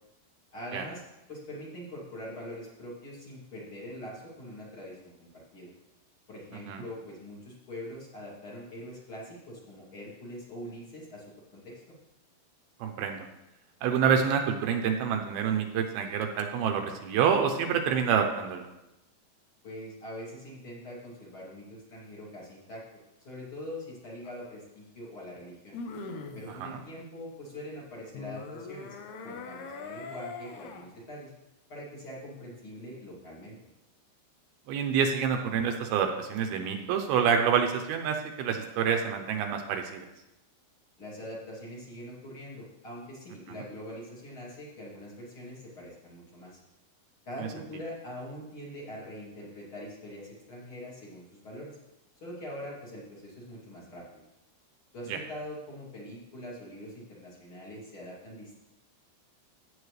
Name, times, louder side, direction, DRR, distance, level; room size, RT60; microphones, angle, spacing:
voice 1, 0.5-1.0 1.3-5.7 6.3-11.2 11.5-11.8 19.6-22.8 23.2-25.8 26.3-29.0 29.2-31.3 31.7-33.6 41.0-46.6 47.3-51.8 52.2-54.2 54.9-58.6, left 1 dB, 35° left, -6 dB, 2.9 m, -43 dB
voice 2, 12.8-13.3 13.8-18.6 26.6-26.8 34.7-40.1 55.1-55.2, right 7 dB, 80° right, 4 dB, 2.6 m, -27 dB
sound 1, 24.2-24.3 25.7-26.5 28.1-30.9 37.3-37.4, left 4 dB, 80° left, 1.7 m, -41 dB
16.0 x 8.4 x 3.2 m, 0.97 s
omnidirectional pair, 4.6 m